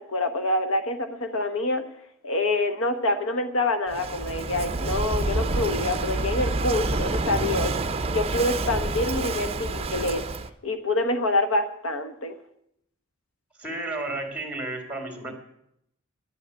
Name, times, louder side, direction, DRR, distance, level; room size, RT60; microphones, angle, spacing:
voice 1, 0.0-1.8 2.2-7.7 8.1-10.2 10.6-12.3, left 2 dB, 75° left, 8 dB, 1.1 m, -26 dB
Walk footsteps / Wind / Waves surf, 3.9-10.5, right 3 dB, 30° right, 0.6 m, -28 dB
voice 2, 13.6-15.3, right 2 dB, 5° right, 4 dB, 2.5 m, -32 dB
11.0 x 8.2 x 9.6 m, 0.77 s
head